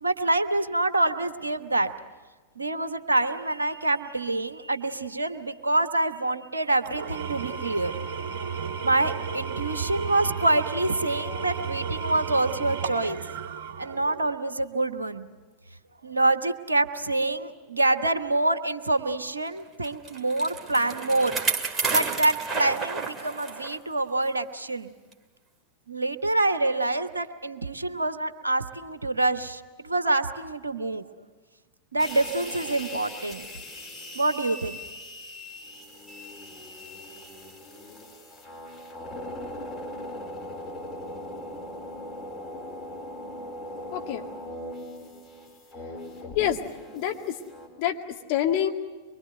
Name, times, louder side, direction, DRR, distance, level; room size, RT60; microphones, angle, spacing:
voice 1, 0.0-1.9 2.6-7.9 8.8-13.2 13.8-15.3 16.0-21.3 21.9-24.9 25.9-31.1 31.9-33.4 34.1-34.8, right 2 dB, 75° right, 10 dB, 1.0 m, -26 dB
Engine / Tools, 6.8-14.3, right 6 dB, 55° right, 1.5 m, -33 dB
Bicycle, 19.8-23.8 24.2-24.3 25.1-25.2, right 4 dB, 20° right, 2.2 m, -30 dB
sound 1, 32.0-47.7, left 1 dB, 15° left, 4.9 m, -40 dB
voice 2, 43.9-44.3 46.3-46.7 46.9-47.4 47.8-48.7, left 10 dB, 45° left, 2 dB, 2.1 m, -27 dB
24.0 x 24.0 x 7.9 m, 1.3 s
figure-of-eight pair, 90°, 0 cm